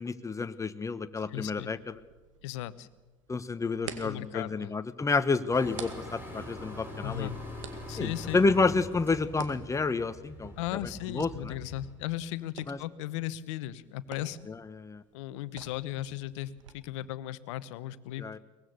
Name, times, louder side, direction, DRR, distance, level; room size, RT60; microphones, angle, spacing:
voice 1, 0.0-1.9 3.3-7.3 8.0-10.5 11.1-11.5 12.7-12.8 14.5-15.0 18.2-18.4, left 4 dB, 20° left, 12 dB, 1.3 m, -29 dB
voice 2, 1.2-1.7 2.4-2.9 4.0-4.7 7.0-7.4 7.9-8.4 10.6-14.4 15.1-18.2, left 14 dB, 70° left, 16 dB, 1.0 m, -36 dB
sound 1, 1.2-16.7, right 8 dB, 80° right, 2.0 m, -50 dB
sound 2, 5.5-11.9, left 1 dB, 15° right, 7.2 m, -43 dB
22.5 x 20.0 x 6.8 m, 1.2 s
hypercardioid pair, 70°, 16 cm